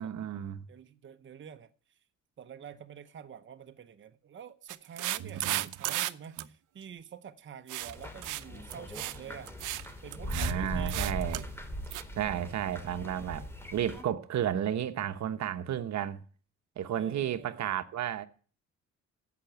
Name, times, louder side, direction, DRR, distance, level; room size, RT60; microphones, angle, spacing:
voice 1, 0.0-0.7 5.2-5.6 10.3-11.4 12.2-16.2 16.8-18.3, right 10 dB, 65° right, 1.1 m, -33 dB
voice 2, 0.7-2.0 2.4-9.5 10.0-11.4 12.2-12.5 16.9-17.7, right 8 dB, 40° right, 0.9 m, -48 dB
sound 1, 4.7-6.1 6.4-6.5 7.7-7.9 8.2-8.4 8.7-9.2 9.5-9.9 10.1-10.5 10.9-11.4 11.9-12.0, right 16 dB, 85° right, 0.7 m, -34 dB
sound 2, 7.8-14.0, equal, 10° left, 2.8 m, -39 dB
15.5 x 5.9 x 9.4 m
cardioid pair, 90°, 30 cm